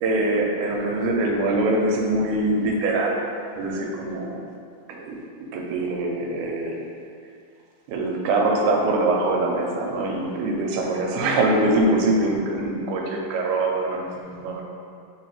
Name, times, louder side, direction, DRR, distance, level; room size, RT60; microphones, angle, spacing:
voice 1, 0.0-3.2 3.6-4.4 4.9-5.2 5.5-6.8 7.9-14.6, right 2 dB, 80° right, 0 dB, 2.0 m, -23 dB
4.5 x 3.9 x 2.9 m, 2.4 s
omnidirectional pair, 3.7 m